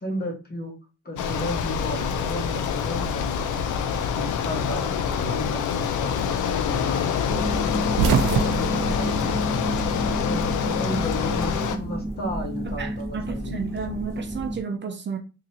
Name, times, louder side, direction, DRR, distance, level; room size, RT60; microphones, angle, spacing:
voice 1, 0.0-0.8 1.0-3.7 4.1-6.2 6.6-9.3 10.3-13.6, left 1 dB, 30° left, 1.5 m, -33 dB
Bicycle, 1.2-11.8, left 7 dB, 75° left, 0.6 m, -26 dB
sound 1, 7.3-14.6, right 1 dB, 10° left, 0.9 m, -30 dB
sound 2, 7.9-10.2 10.5-11.5 12.7-14.2, right 7 dB, 85° right, 0.5 m, -27 dB
voice 2, 12.6-15.2, right 6 dB, 40° right, 0.6 m, -32 dB
3.9 x 2.9 x 2.8 m
cardioid pair, 90°, 30 cm